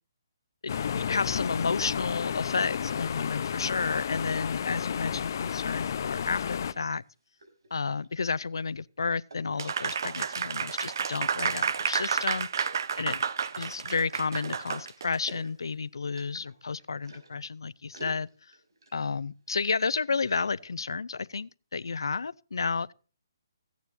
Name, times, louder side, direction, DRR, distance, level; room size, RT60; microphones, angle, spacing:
voice 1, 0.6-7.0 7.7-13.2 13.6-18.3 18.9-22.9, left 4 dB, 85° left, 0.5 m, -31 dB
sound 1, 0.7-6.7, left 8 dB, 50° left, 0.8 m, -32 dB
sound 2, 7.0-8.4 9.3-10.2 10.8-11.3 11.8-11.9 12.6-13.7 14.3-17.5 17.9-19.2 19.5-20.7, right 2 dB, 85° right, 5.2 m, -51 dB
Applause, 9.6-15.2, right 6 dB, 60° right, 0.9 m, -31 dB
25.0 x 9.4 x 2.7 m
hypercardioid pair, 155°, 2 cm